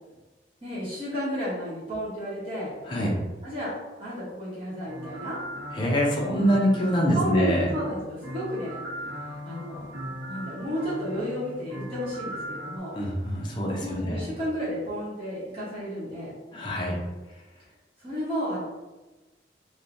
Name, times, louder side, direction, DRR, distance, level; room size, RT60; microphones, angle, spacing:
voice 1, 0.6-2.7 3.4-3.7 4.0-5.4 6.3-6.6 7.0-8.8 9.2-12.9 13.7-16.3 18.0-18.6, equal, 30° right, -10 dB, 1.0 m, -32 dB
sound 1, 4.9-12.8, equal, 65° right, 0.9 m, -39 dB
voice 2, 5.7-7.7 12.9-14.2 16.5-17.0, equal, 25° left, -3 dB, 0.5 m, -24 dB
3.0 x 2.2 x 2.5 m, 1.1 s
head